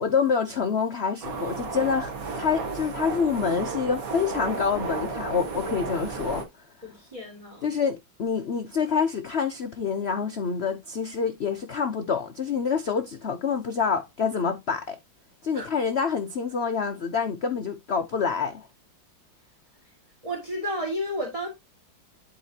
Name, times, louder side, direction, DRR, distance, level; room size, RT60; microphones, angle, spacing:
voice 1, 0.0-6.5 7.6-15.0 15.4-18.7, left 6 dB, 70° left, 0.6 m, -27 dB
sound 1, 1.2-6.4, right 4 dB, 50° right, 1.7 m, -33 dB
voice 2, 6.8-7.7 15.5-15.7 20.2-21.5, equal, 20° right, 1.9 m, -32 dB
11.5 x 4.2 x 2.8 m
omnidirectional pair, 2.1 m